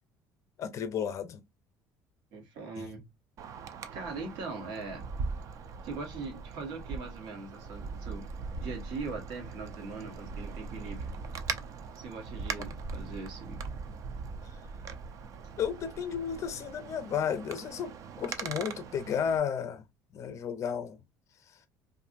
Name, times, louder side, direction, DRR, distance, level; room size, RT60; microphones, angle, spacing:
voice 1, 0.6-1.4 2.8-2.9 12.6-12.7 15.6-19.8 20.1-21.0, left 8 dB, 50° left, 0.6 m, -33 dB
voice 2, 2.3-3.1 3.9-5.1 5.8-8.3 8.6-11.1 11.9-13.7, right 4 dB, 75° right, 1.2 m, -41 dB
Wind, 3.4-19.4, right 5 dB, 50° right, 0.5 m, -40 dB
2.6 x 2.6 x 2.5 m
supercardioid pair, 95°, 7 cm